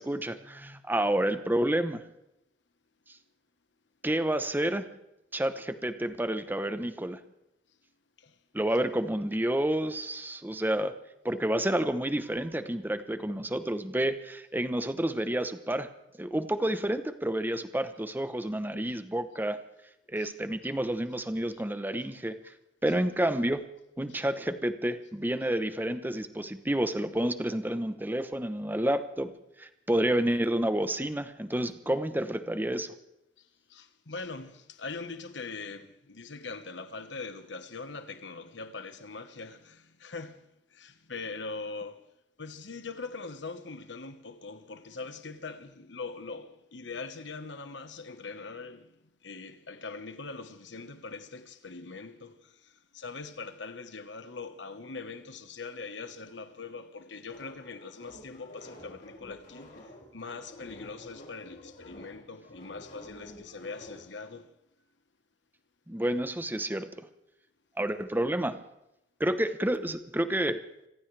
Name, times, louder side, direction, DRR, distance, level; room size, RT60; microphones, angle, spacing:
voice 1, 0.0-2.0 4.0-4.9 5.3-7.2 8.5-10.9 11.2-15.9 16.2-19.6 20.1-22.3 22.8-23.6 24.0-29.3 29.6-32.9 65.9-67.1 67.8-68.6 69.2-70.6, right 1 dB, 10° right, 0.9 m, -29 dB
voice 2, 33.4-40.4 40.7-42.0 42.4-64.6, left 4 dB, 70° left, 1.3 m, -42 dB
sound 1, 57.3-64.0, left 1 dB, 55° left, 6.2 m, -49 dB
25.5 x 16.0 x 3.4 m
head